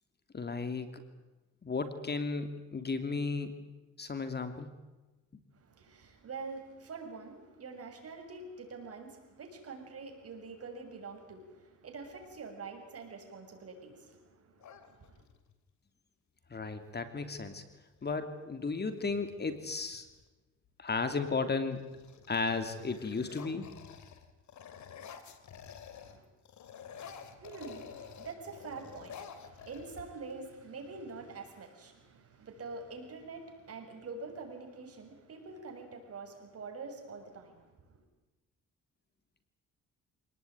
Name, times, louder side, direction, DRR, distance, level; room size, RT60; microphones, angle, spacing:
voice 1, 0.3-1.0 1.6-3.6 4.0-4.7 16.5-17.6 18.0-20.0 20.8-21.8 22.3-23.7, left 4 dB, 35° left, 9 dB, 2.8 m, -34 dB
voice 2, 5.5-15.2 25.9-26.3 26.8-38.0, right 4 dB, 50° right, 4 dB, 6.8 m, -46 dB
sound 1, 14.6-15.5 17.2-17.4 17.7-18.2 18.7-20.2 20.9-21.3 21.6-26.2 26.4-30.4, left 7 dB, 70° left, 3.0 m, -50 dB
26.0 x 19.0 x 9.5 m, 1.1 s
cardioid pair, 90°, 30 cm